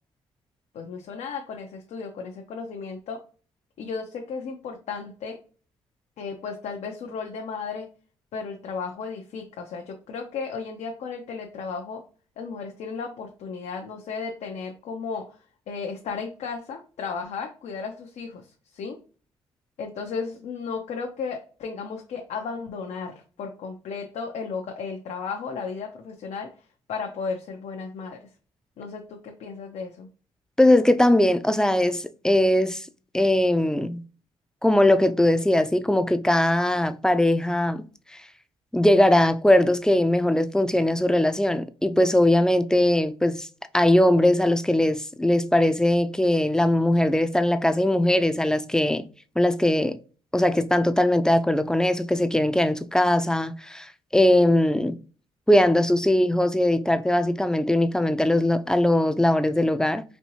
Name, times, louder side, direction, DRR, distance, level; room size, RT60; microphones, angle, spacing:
voice 1, 0.7-3.2 3.8-5.4 6.2-7.9 8.3-12.0 12.4-15.4 15.7-19.0 19.8-26.5 26.9-28.3 28.8-30.1, left 5 dB, 75° left, 0.7 m, -34 dB
voice 2, 30.6-32.9 33.1-34.0 34.6-37.8 38.7-43.5 43.7-49.0 49.4-50.0 50.3-55.0 55.5-60.0, left 1 dB, 5° left, 0.4 m, -20 dB
4.3 x 2.6 x 2.9 m
cardioid pair, 65°, 12 cm